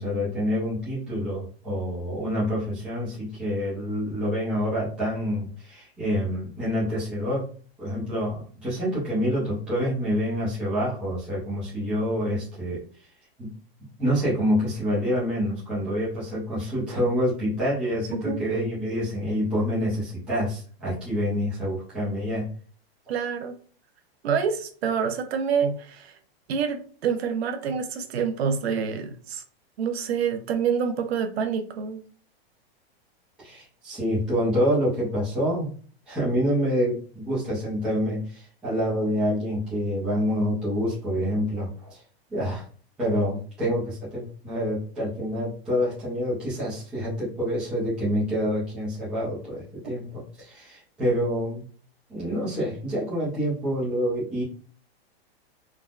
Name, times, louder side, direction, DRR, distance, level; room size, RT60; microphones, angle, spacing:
voice 1, 0.0-7.5 7.8-12.8 13.4-13.5 14.0-22.5 33.4-35.7 36.1-42.0 42.3-42.6 43.0-51.6 52.1-54.4, equal, 5° right, -10 dB, 0.4 m, -27 dB
voice 2, 23.1-23.6 24.2-26.1 26.5-29.4 29.8-32.0, right 6 dB, 85° right, 7 dB, 0.6 m, -27 dB
3.5 x 2.0 x 2.4 m, 0.43 s
supercardioid pair, 180°, 31 cm